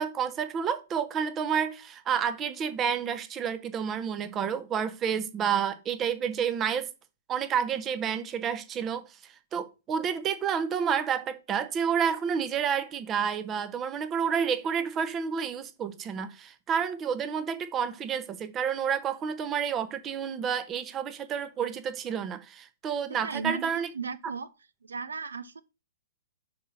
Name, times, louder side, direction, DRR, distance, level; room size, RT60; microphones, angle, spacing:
voice 1, 0.0-6.9 7.3-9.0 9.5-23.9, right 7 dB, 20° right, 0.9 m, -30 dB
voice 2, 23.1-24.5 24.8-25.6, right 5 dB, 70° right, 0.6 m, -36 dB
5.9 x 4.4 x 6.3 m
figure-of-eight pair, 115°, 0 cm